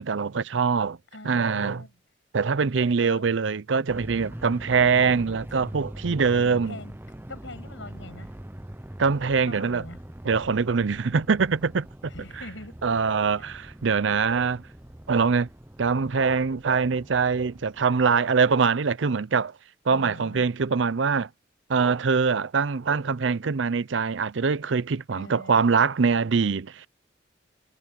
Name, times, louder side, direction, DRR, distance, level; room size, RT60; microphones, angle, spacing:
voice 1, 0.0-1.0 1.2-1.8 2.3-6.8 9.0-9.8 10.2-12.1 12.8-14.6 15.1-15.5 15.8-19.5 19.9-21.3 21.7-26.9, right 5 dB, 75° right, 0.6 m, -23 dB
voice 2, 1.1-2.0 3.0-3.3 6.3-7.0 7.3-8.3 9.3-10.0 12.1-12.8 13.4-13.6 19.9-20.5 25.1-25.7, left 2 dB, 85° left, 6.6 m, -43 dB
sound 1, 3.9-18.2, right 1 dB, 10° right, 0.7 m, -42 dB
head